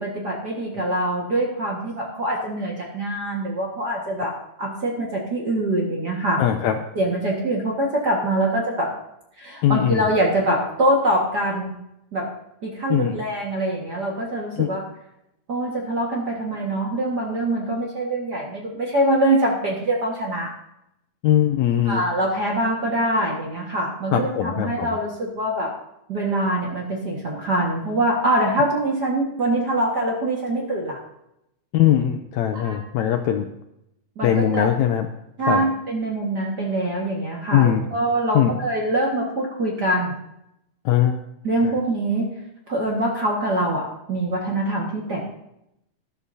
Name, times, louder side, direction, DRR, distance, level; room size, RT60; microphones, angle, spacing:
voice 1, 0.0-4.3 4.6-6.4 6.9-8.9 9.4-11.7 12.1-12.3 12.6-14.8 15.5-20.5 21.8-25.7 26.1-31.0 32.5-32.8 34.2-34.7 35.4-40.1 41.4-42.3 42.7-45.2, right 1 dB, 40° right, -2 dB, 1.6 m, -24 dB
voice 2, 6.4-6.8 9.6-10.1 12.9-13.2 14.6-14.7 21.2-22.0 24.1-25.0 31.7-33.5 34.2-35.1 35.5-35.6 37.5-37.8 38.3-38.6 40.8-41.2 41.6-41.7, left 10 dB, 80° left, 6 dB, 1.7 m, -20 dB
19.5 x 11.5 x 2.7 m, 0.82 s
omnidirectional pair, 3.9 m